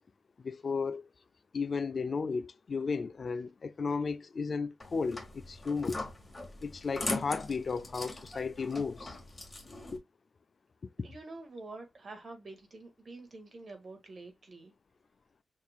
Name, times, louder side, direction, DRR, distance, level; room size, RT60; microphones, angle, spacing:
voice 1, 0.4-1.1 1.5-6.0 6.6-9.2 9.9-10.0, left 5 dB, 45° left, 0.3 m, -34 dB
sound 1, 4.8-10.0, left 2 dB, 20° left, 1.7 m, -41 dB
voice 2, 11.0-14.7, right 2 dB, 45° right, 1.7 m, -47 dB
6.4 x 3.6 x 2.3 m
wide cardioid pair, 140°, 0 cm